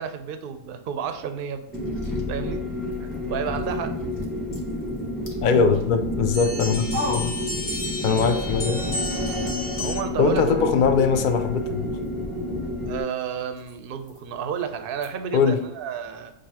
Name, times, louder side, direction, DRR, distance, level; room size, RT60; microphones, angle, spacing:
voice 1, 0.0-1.6 2.3-2.6 3.0-4.0 9.8-10.7 12.8-16.3, right 7 dB, 60° right, 8 dB, 0.6 m, -31 dB
sound 1, 1.0-8.2 8.5-15.7, left 1 dB, 30° left, 0.8 m, -42 dB
sound 2, 1.7-13.0, left 1 dB, ahead, 0.9 m, -30 dB
voice 2, 5.4-7.4 8.0-8.9 10.2-11.9 15.3-15.6, left 5 dB, 65° left, 8 dB, 0.5 m, -21 dB
sound 3, 6.3-10.3, left 2 dB, 45° left, 1.2 m, -32 dB
6.1 x 2.6 x 2.8 m, 0.89 s
omnidirectional pair, 1.3 m